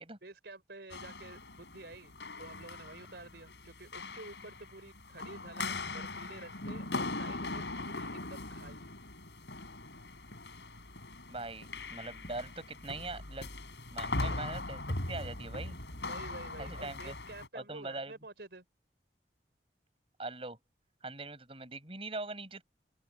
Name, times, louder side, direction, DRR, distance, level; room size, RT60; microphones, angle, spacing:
voice 1, 0.0-8.9 14.1-14.4 16.0-18.6, right 2 dB, 75° right, 4.0 m, -50 dB
sound 1, 0.9-17.5, left 2 dB, 85° left, 5.5 m, -40 dB
voice 2, 11.3-13.5 13.9-15.8 16.6-17.2 17.5-18.1 20.2-20.6 21.0-22.6, right 2 dB, 35° right, 6.4 m, -42 dB
open air
head